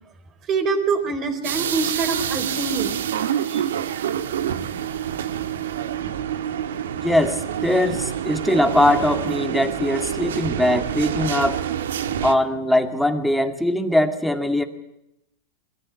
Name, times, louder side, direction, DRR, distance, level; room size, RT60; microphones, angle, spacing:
voice 1, 0.5-3.0 3.5-3.7, right 4 dB, 35° right, 6 dB, 4.2 m, -25 dB
sound 1, 1.4-12.3, right 9 dB, 85° right, 1.4 m, -27 dB
voice 2, 7.0-11.6 12.2-14.6, left 1 dB, ahead, 5 dB, 2.1 m, -21 dB
22.0 x 14.5 x 9.8 m, 0.85 s
hypercardioid pair, 125°, 0 cm